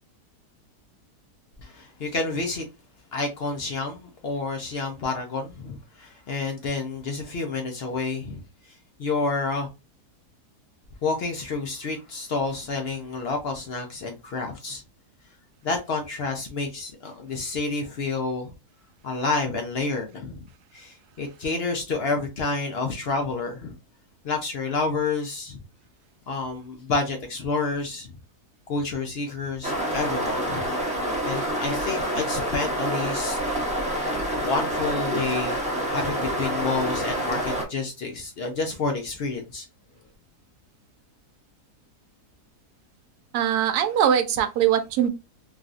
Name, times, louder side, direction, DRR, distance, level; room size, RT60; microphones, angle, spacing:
voice 1, 1.6-2.6 3.1-9.7 11.0-14.8 15.6-18.5 19.0-20.5 20.7-23.7 24.2-25.6 26.3-28.1 28.7-30.6 31.2-33.4 34.3-35.6 35.9-39.7, left 3 dB, 70° left, 0.6 m, -29 dB
sound 1, 29.6-37.6, right 1 dB, 5° right, 0.7 m, -27 dB
voice 2, 43.3-45.1, right 9 dB, 75° right, 1.1 m, -21 dB
3.4 x 2.4 x 2.4 m
omnidirectional pair, 1.7 m